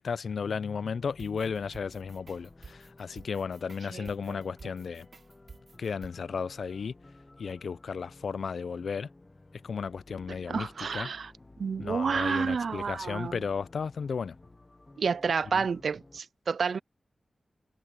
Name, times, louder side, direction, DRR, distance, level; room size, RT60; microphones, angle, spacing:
voice 1, 0.0-5.1 5.8-7.0 7.4-9.1 9.5-11.1 11.8-14.3 15.5-15.6, left 6 dB, 75° left, 0.5 m, -34 dB
sound 1, 0.7-16.2, left 2 dB, 20° left, 0.8 m, -55 dB
sound 2, 1.2-6.1, right 4 dB, 50° right, 3.1 m, -51 dB
voice 2, 3.9-4.4 10.5-11.3 11.6-13.4 15.0-16.8, right 5 dB, 70° right, 0.3 m, -30 dB
wide cardioid pair, 150°, 0 cm